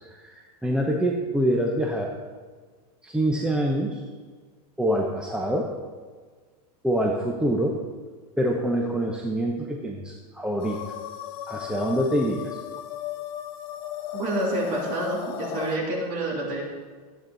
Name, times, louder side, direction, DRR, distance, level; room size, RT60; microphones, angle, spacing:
voice 1, 0.0-2.1 3.0-4.0 4.8-5.7 6.8-7.8 8.4-10.8 11.5-12.6, right 1 dB, 5° right, 0 dB, 0.9 m, -25 dB
sound 1, 10.6-15.8, left 10 dB, 60° left, 1.3 m, -36 dB
voice 2, 14.1-16.6, right 1 dB, 45° right, -2 dB, 3.1 m, -28 dB
15.0 x 8.7 x 4.0 m, 1.5 s
supercardioid pair, 140°, 20 cm